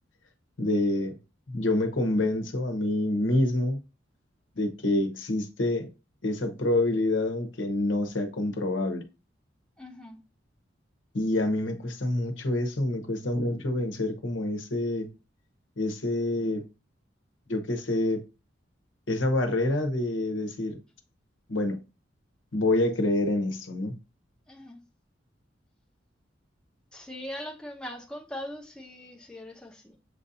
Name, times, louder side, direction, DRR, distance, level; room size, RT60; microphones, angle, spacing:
voice 1, 0.6-1.2 1.5-3.8 4.6-5.9 6.2-9.1 11.1-15.1 15.8-16.7 17.5-18.2 19.1-20.8 21.5-21.8 22.5-24.0, left 1 dB, 85° left, 0.9 m, -27 dB
voice 2, 9.8-10.2 24.5-24.8 26.9-30.0, left 1 dB, 5° left, 0.8 m, -41 dB
7.3 x 2.6 x 2.6 m
head